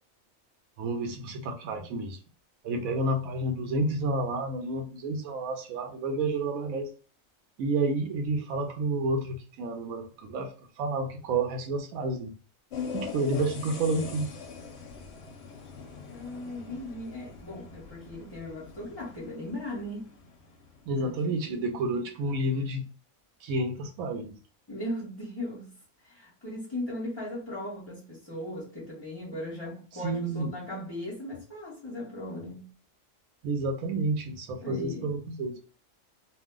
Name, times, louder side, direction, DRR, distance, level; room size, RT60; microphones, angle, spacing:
voice 1, 0.8-2.2 2.6-6.9 7.6-10.5 10.8-12.3 12.9-14.3 20.9-22.9 23.4-24.4 30.0-30.5 33.4-35.6, right 2 dB, 90° right, 1.1 m, -30 dB
sound 1, 12.7-21.1, left 6 dB, 60° left, 0.8 m, -42 dB
voice 2, 16.1-20.1 21.0-22.0 24.7-25.7 26.0-32.7 34.6-35.1, left 1 dB, 20° left, 0.9 m, -38 dB
2.6 x 2.1 x 3.6 m
omnidirectional pair, 1.4 m